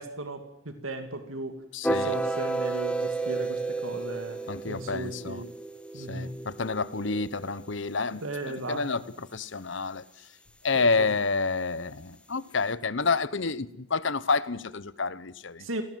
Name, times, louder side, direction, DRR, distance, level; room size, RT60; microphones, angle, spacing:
voice 1, 0.0-1.6 1.9-4.4 4.6-5.5 5.9-6.4 8.2-9.0 10.7-11.1 15.6-15.8, right 1 dB, 75° right, 7 dB, 2.7 m, -36 dB
voice 2, 1.7-2.2 4.5-5.4 6.0-8.2 8.7-10.0 10.6-15.7, left 4 dB, 60° left, 17 dB, 1.0 m, -29 dB
sound 1, 1.8-7.9, right 3 dB, 5° left, 1.5 m, -32 dB
27.5 x 18.5 x 7.6 m, 0.81 s
head